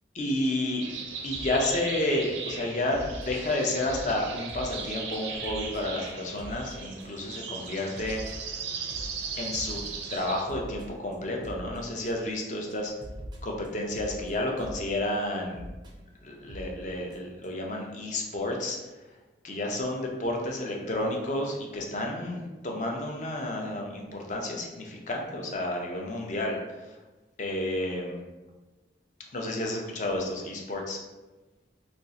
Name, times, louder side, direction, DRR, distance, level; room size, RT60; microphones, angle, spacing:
voice 1, 0.1-0.8 1.2-8.4 9.4-9.8 10.1-12.9 13.4-15.6 16.2-18.8 19.4-26.6 27.4-28.2 29.3-31.0, left 1 dB, 40° left, 0 dB, 0.5 m, -31 dB
sound 1, 0.8-10.4, right 5 dB, 85° right, 0.5 m, -38 dB
sound 2, 1.3-1.6 2.0-2.2 2.9-4.1 4.5-4.8 5.1-5.2 5.4-5.8 6.1-6.2 6.4-6.7 7.0-7.4 7.6-12.4 12.7-12.8 13.0-14.8 15.5-15.9 16.5-16.7 17.1-17.2 17.4-17.5, equal, 25° right, 0.4 m, -43 dB
2.5 x 2.4 x 3.9 m, 1.2 s
head